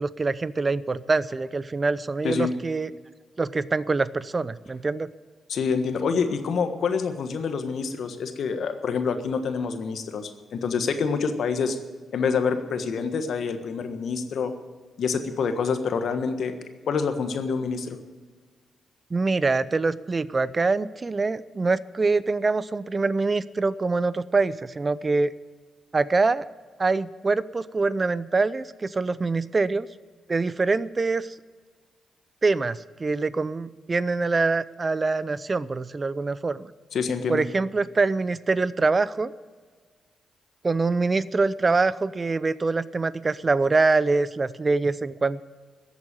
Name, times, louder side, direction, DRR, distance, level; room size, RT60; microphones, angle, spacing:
voice 1, 0.0-2.9 3.4-5.1 19.1-25.3 25.9-26.5 26.8-29.9 30.3-31.3 32.4-36.7 37.3-39.3 40.6-45.5, right 3 dB, 35° right, 18 dB, 0.6 m, -24 dB
voice 2, 5.5-11.8 12.1-14.5 15.0-16.5 16.9-18.0 36.9-37.4, left 5 dB, 70° left, 8 dB, 1.4 m, -27 dB
14.5 x 8.2 x 8.9 m, 1.5 s
supercardioid pair, 50°, 0 cm